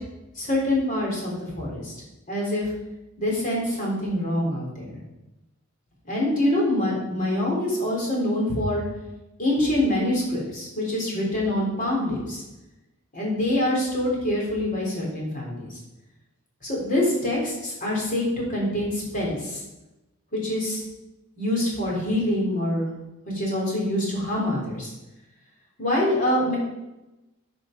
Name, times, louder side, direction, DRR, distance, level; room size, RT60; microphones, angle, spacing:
voice 1, 0.4-1.9 2.3-2.7 3.2-5.0 6.1-8.8 9.4-12.4 13.1-15.7 16.6-19.6 20.3-20.8 21.4-22.9 23.3-24.9 25.8-26.6, left 1 dB, 40° left, -4 dB, 3.8 m, -25 dB
10.5 x 5.4 x 5.3 m, 0.98 s
head